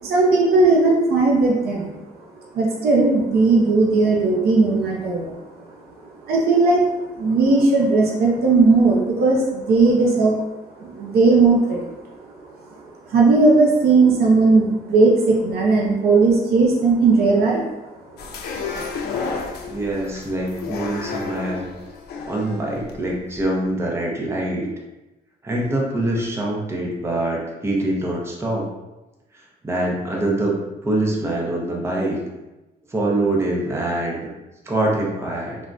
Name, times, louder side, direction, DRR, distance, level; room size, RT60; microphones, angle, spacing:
voice 1, 0.0-2.0 2.5-5.4 6.3-10.4 10.8-12.1 13.1-17.7, right 3 dB, 80° right, -2 dB, 0.5 m, -17 dB
sound 1, 18.2-23.4, left 4 dB, 90° left, 0.4 m, -31 dB
voice 2, 19.7-21.7 22.3-24.7 25.4-28.7 29.6-30.5 30.8-32.2 32.9-34.3 34.7-35.6, right 1 dB, 15° right, -2 dB, 0.5 m, -24 dB
3.4 x 2.0 x 2.4 m, 1.0 s
wide cardioid pair, 160°, 16 cm